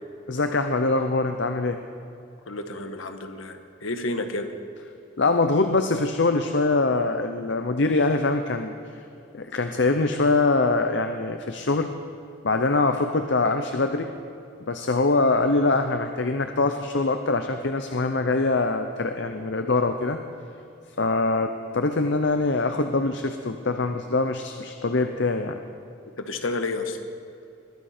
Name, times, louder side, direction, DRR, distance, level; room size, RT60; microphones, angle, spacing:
voice 1, 0.3-1.8 5.2-8.7 9.3-11.9 12.4-14.1 14.7-20.2 21.0-25.6, left 3 dB, 55° left, 7 dB, 0.7 m, -23 dB
voice 2, 2.5-4.5 26.2-27.0, left 2 dB, 75° left, 7 dB, 1.4 m, -30 dB
21.5 x 14.5 x 4.4 m, 2.7 s
head